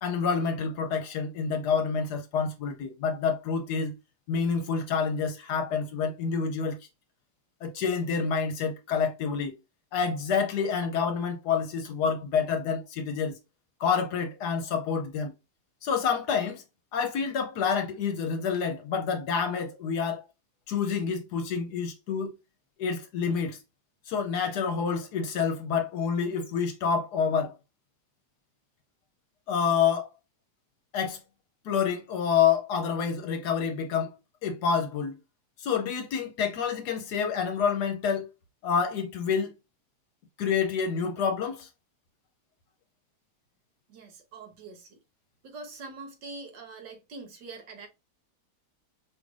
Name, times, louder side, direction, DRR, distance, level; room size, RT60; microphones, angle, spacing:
voice 1, 0.0-3.9 4.3-6.8 7.6-9.5 9.9-13.3 13.8-15.3 15.8-16.6 16.9-20.2 20.7-22.3 22.8-23.6 24.1-27.5 29.5-30.1 30.9-31.2 31.6-34.1 34.4-35.2 35.6-38.3 38.6-39.5 40.4-41.7, left 6 dB, 75° left, 1.2 m, -28 dB
voice 2, 43.9-45.0 45.4-47.9, right 3 dB, 85° right, 1.8 m, -44 dB
4.9 x 2.5 x 3.1 m
omnidirectional pair, 1.8 m